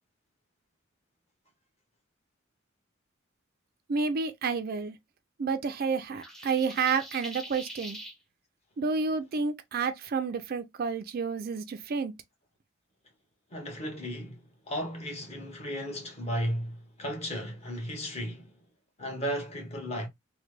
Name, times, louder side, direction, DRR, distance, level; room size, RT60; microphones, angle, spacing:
voice 1, 3.9-5.0 5.4-8.0 8.8-12.1, right 5 dB, 50° right, 0.4 m, -30 dB
sound 1, 6.2-8.2, equal, ahead, 0.6 m, -43 dB
voice 2, 13.5-18.5 19.0-20.1, equal, 30° left, 1.2 m, -35 dB
3.2 x 2.1 x 3.2 m
head